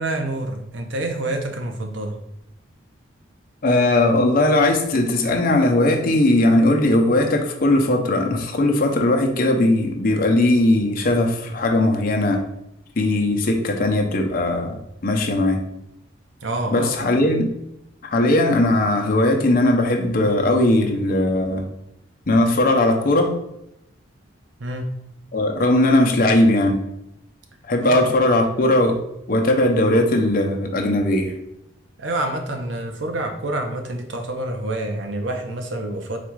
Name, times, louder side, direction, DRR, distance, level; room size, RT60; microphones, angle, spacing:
voice 1, 0.0-2.2 16.4-17.2 24.6-24.9 27.8-28.1 32.0-36.2, right 1 dB, 65° right, 4 dB, 0.7 m, -27 dB
voice 2, 3.6-12.4 13.0-14.7 15.0-15.6 16.7-17.5 18.0-21.6 22.3-23.3 25.3-26.8 27.7-29.0 29.3-31.3, left 1 dB, 45° left, 2 dB, 0.6 m, -18 dB
4.1 x 2.4 x 4.6 m, 0.82 s
head